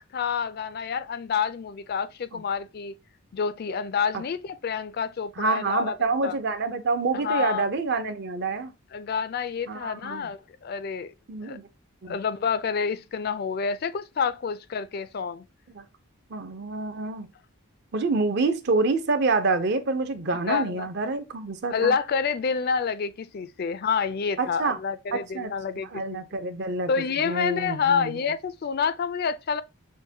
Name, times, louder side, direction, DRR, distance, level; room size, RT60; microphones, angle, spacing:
voice 1, 0.1-3.0 3.3-5.9 6.2-6.3 7.1-7.7 8.9-11.1 11.4-11.6 12.0-15.4 20.3-20.9 21.7-26.2 26.9-29.6, left 6 dB, 45° left, 0.3 m, -28 dB
voice 2, 5.4-8.7 9.7-10.3 11.3-11.7 12.0-12.2 15.7-15.8 16.3-17.3 17.9-21.9 24.4-24.8 25.1-25.5 25.9-26.9 27.2-28.2, right 3 dB, 50° right, 0.6 m, -27 dB
6.3 x 2.1 x 2.7 m
head